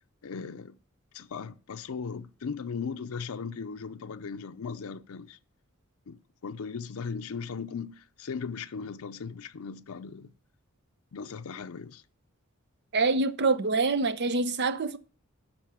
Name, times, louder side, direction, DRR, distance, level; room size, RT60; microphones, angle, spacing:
voice 1, 0.2-0.8 1.1-5.4 6.1-10.3 11.1-12.0, left 5 dB, 85° left, 0.5 m, -38 dB
voice 2, 12.9-15.0, right 3 dB, 55° right, 0.7 m, -25 dB
12.0 x 4.2 x 6.2 m
head